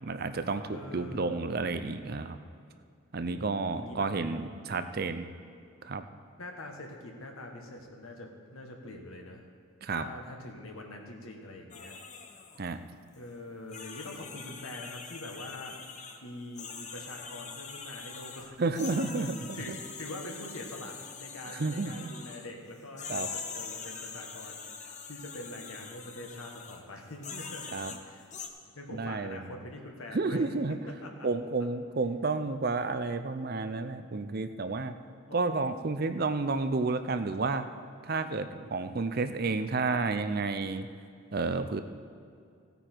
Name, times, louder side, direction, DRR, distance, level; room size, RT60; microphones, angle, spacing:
voice 1, 0.0-2.4 3.1-5.3 5.8-6.1 9.8-10.0 12.6-12.8 18.6-19.8 21.5-22.1 23.1-23.3 27.7-27.9 28.9-29.6 30.1-30.8 31.2-34.9 35.3-37.7 38.0-40.9 41.3-41.8, right 3 dB, 45° right, 10 dB, 0.5 m, -31 dB
voice 2, 0.7-1.4 3.2-4.1 6.4-9.4 10.0-12.0 13.1-15.8 16.2-18.5 19.2-27.7 28.0-28.2 28.7-30.4 30.7-31.3 35.3-35.5 36.0-36.3, left 1 dB, 80° left, 2 dB, 1.6 m, -44 dB
sound 1, 11.7-12.6 13.1-13.2 13.7-16.2 16.6-22.5 23.0-26.8 27.2-28.5, left 5 dB, 35° left, 0.8 m, -43 dB
16.0 x 9.1 x 4.6 m, 2.3 s
head